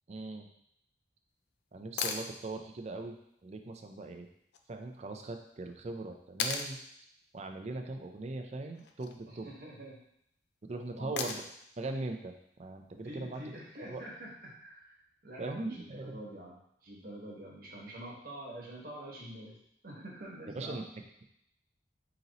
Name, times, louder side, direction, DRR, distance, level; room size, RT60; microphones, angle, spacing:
voice 1, 0.1-0.5 1.7-3.2 3.4-4.3 4.7-6.8 7.3-9.5 10.6-11.4 11.8-12.3 12.6-13.4 13.9-14.0 15.4-16.2 20.5-20.8, right 2 dB, 40° right, 4 dB, 0.4 m, -40 dB
sound 1, 2.0-2.3 4.5-4.6 6.4-6.7 8.7-9.2 11.2-11.6 13.8-13.9, left 6 dB, 65° left, 0.4 m, -35 dB
voice 2, 9.3-10.0 10.9-11.3 13.0-14.9 15.2-19.6 19.8-20.8, right 1 dB, 55° right, -3 dB, 1.2 m, -46 dB
4.0 x 2.9 x 4.0 m, 0.74 s
head